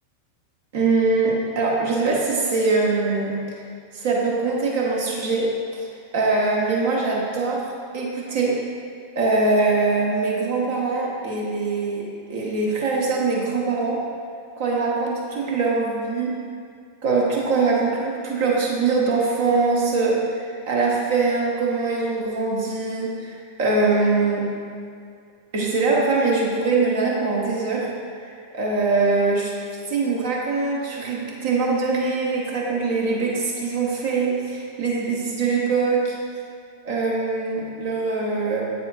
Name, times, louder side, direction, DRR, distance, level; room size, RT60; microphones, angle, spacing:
voice 1, 0.7-3.4 3.9-5.9 6.1-8.6 9.1-12.0 12.3-14.0 14.6-16.3 17.0-24.5 25.5-27.9 28.2-29.5 29.9-36.2 36.8-38.6, right 3 dB, 55° right, -4 dB, 1.0 m, -22 dB
8.0 x 4.8 x 2.5 m, 2.2 s
figure-of-eight pair, 90°, 0 cm